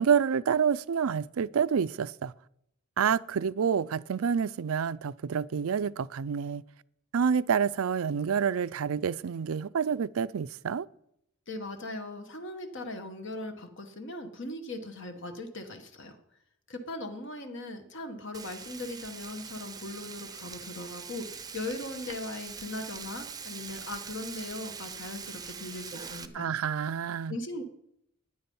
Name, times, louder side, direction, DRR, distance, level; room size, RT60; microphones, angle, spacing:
voice 1, 0.0-2.3 3.0-6.6 7.1-10.9 26.3-27.4, right 7 dB, 80° right, 0.4 m, -28 dB
voice 2, 11.5-16.2 16.7-26.5 27.3-27.6, left 2 dB, 60° left, 1.4 m, -39 dB
Frying (food), 18.3-26.3, right 6 dB, 20° right, 0.6 m, -43 dB
13.0 x 9.8 x 5.5 m
head